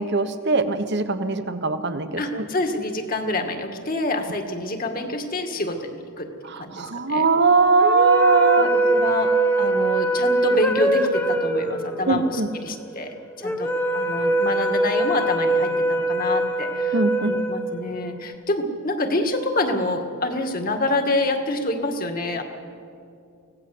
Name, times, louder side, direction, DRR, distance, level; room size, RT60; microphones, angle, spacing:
voice 1, 0.0-2.4 6.5-8.7 12.1-12.5 16.9-17.3, right 4 dB, 50° right, 10 dB, 1.2 m, -20 dB
voice 2, 2.2-7.3 8.6-22.4, left 2 dB, 40° left, 5 dB, 2.0 m, -27 dB
sound 1, 7.8-18.2, right 2 dB, 10° left, 1.3 m, -23 dB
25.0 x 17.5 x 7.9 m, 2.5 s
head